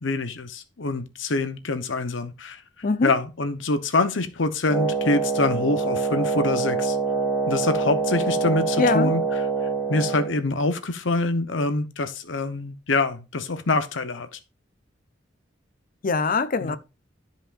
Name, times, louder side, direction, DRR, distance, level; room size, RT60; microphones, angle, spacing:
voice 1, 0.0-2.6 3.0-7.0 7.5-9.4 9.9-14.4 16.6-16.8, left 3 dB, 70° left, 0.9 m, -25 dB
Wind instrument woodwind instrument, 4.7-10.4, right 4 dB, ahead, 2.2 m, -25 dB
voice 2, 8.8-9.1 16.0-16.8, left 4 dB, 45° left, 0.6 m, -22 dB
12.5 x 5.2 x 2.5 m
head